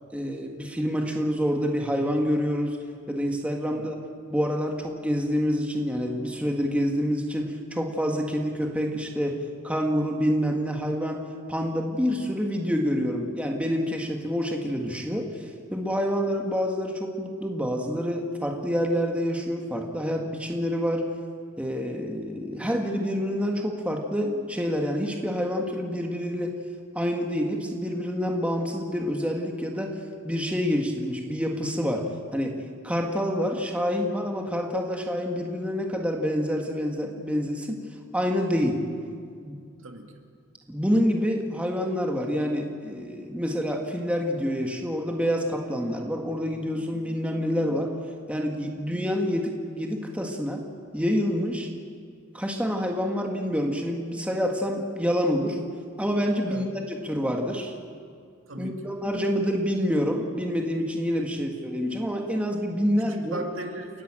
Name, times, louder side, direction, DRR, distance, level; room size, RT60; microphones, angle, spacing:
voice 1, 0.1-2.8 3.1-4.0 4.3-9.4 9.6-11.2 11.5-21.1 21.6-26.5 27.0-30.0 30.2-32.0 32.3-32.6 32.8-37.8 38.1-38.8 39.5-39.6 40.7-47.9 48.3-50.6 50.9-51.7 52.3-55.6 56.0-57.7 58.6-63.4, equal, 5° right, 1 dB, 1.7 m, -27 dB
voice 2, 3.7-4.0 39.8-40.1 56.5-56.8 58.5-58.9 61.3-61.6 63.1-64.0, right 2 dB, 70° right, 3 dB, 2.3 m, -38 dB
29.5 x 11.5 x 9.0 m, 2.2 s
head